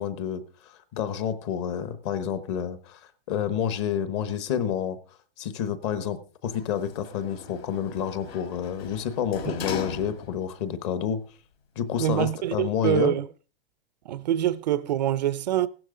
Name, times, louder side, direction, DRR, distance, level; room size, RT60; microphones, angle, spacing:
voice 1, 0.0-3.0 3.3-5.0 5.4-11.2 11.8-13.2, left 8 dB, 30° left, 1.0 m, -29 dB
Sliding door, 6.5-10.6 11.0-11.1, left 6 dB, 75° left, 3.1 m, -39 dB
voice 2, 12.0-13.3 14.1-15.7, right 12 dB, 45° right, 0.5 m, -25 dB
16.0 x 12.0 x 3.7 m
hypercardioid pair, 170°, 31 cm